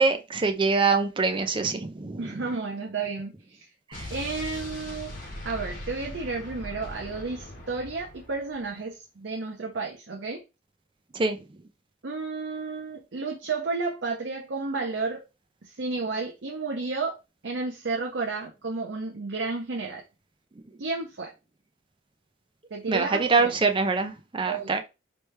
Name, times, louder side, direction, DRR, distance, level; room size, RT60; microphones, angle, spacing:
voice 1, 0.0-2.4 3.9-4.1 11.1-11.4 22.9-24.8, right 4 dB, 25° right, 0.5 m, -24 dB
voice 2, 2.2-3.7 4.1-5.1 5.4-10.4 12.0-15.2 15.6-17.2 17.4-20.0 20.8-21.3 22.7-23.5 24.5-24.8, right 4 dB, 65° right, 0.7 m, -32 dB
Explosion, 3.9-8.7, left 1 dB, 45° left, 1.4 m, -40 dB
3.2 x 3.2 x 3.2 m
head